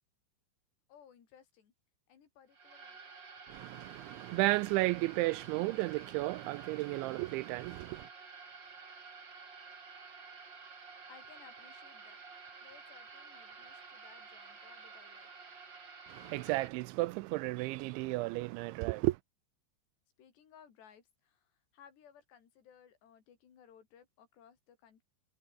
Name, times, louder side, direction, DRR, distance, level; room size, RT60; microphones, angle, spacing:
voice 1, 0.9-1.7 2.1-3.1 11.1-12.2 12.6-15.3 20.2-25.0, left 8 dB, 60° left, 5.6 m, -60 dB
sound 1, 2.5-16.7, right 5 dB, 30° right, 2.7 m, -51 dB
voice 2, 3.5-8.1 16.1-19.2, right 21 dB, 85° right, 2.7 m, -33 dB
omnidirectional pair, 5.6 m